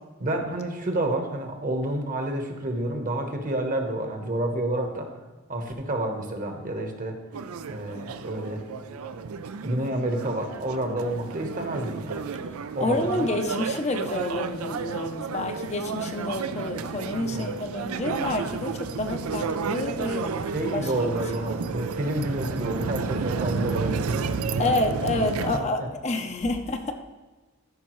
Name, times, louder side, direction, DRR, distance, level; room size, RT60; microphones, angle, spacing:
voice 1, 0.2-5.1 5.5-7.2 7.7-8.6 9.6-12.3 12.7-13.4 17.3-17.5 20.5-25.0 25.4-25.9, right 1 dB, 40° right, 4 dB, 1.1 m, -29 dB
sound 1, 7.3-25.6, right 5 dB, 85° right, 0.4 m, -32 dB
voice 2, 12.8-20.3 20.7-21.1 24.6-26.9, left 2 dB, 30° left, 5 dB, 0.6 m, -28 dB
13.0 x 5.4 x 3.1 m, 1.3 s
head